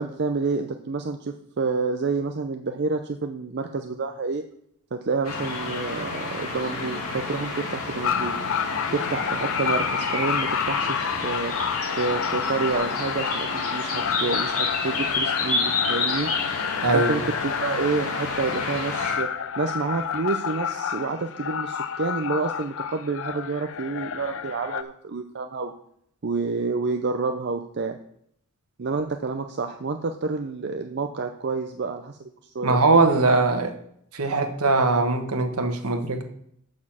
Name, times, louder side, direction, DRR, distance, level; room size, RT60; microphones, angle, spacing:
voice 1, 0.0-4.4 4.9-8.3 8.9-11.0 11.2-11.6 12.0-16.3 16.9-25.7 26.2-28.0 28.8-32.8, right 4 dB, 50° right, 6 dB, 0.6 m, -28 dB
sound 1, 5.2-19.2, left 3 dB, 80° left, 2.6 m, -29 dB
sound 2, 8.0-24.8, left 7 dB, 60° left, 0.5 m, -30 dB
voice 2, 16.8-17.1 32.6-33.7 34.1-36.2, right 3 dB, 75° right, 6 dB, 1.3 m, -21 dB
6.9 x 6.2 x 7.3 m, 0.69 s
head